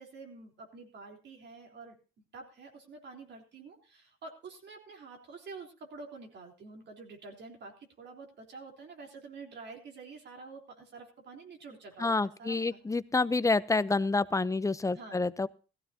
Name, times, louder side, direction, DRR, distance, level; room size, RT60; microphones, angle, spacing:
voice 1, 0.0-2.0 2.3-12.8 14.9-15.2, right 4 dB, 60° right, 2 dB, 3.7 m, -48 dB
voice 2, 12.0-15.5, left 3 dB, 15° left, 16 dB, 0.6 m, -28 dB
16.5 x 14.5 x 2.8 m, 0.35 s
cardioid pair, 90°, 20 cm